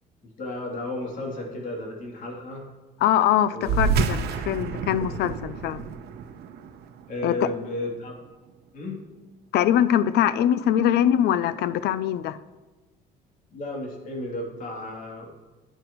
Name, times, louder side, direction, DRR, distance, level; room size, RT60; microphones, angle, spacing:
voice 1, 0.4-2.6 3.5-3.8 7.1-8.2 8.7-9.1 13.5-15.3, left 1 dB, 50° left, -1 dB, 3.0 m, -33 dB
voice 2, 3.0-5.9 7.2-7.5 9.5-12.4, left 10 dB, 75° left, 15 dB, 0.5 m, -22 dB
sound 1, 3.6-8.5, right 5 dB, 75° right, 0.9 m, -29 dB
11.5 x 9.0 x 3.1 m, 1.2 s
cardioid pair, 110°, 17 cm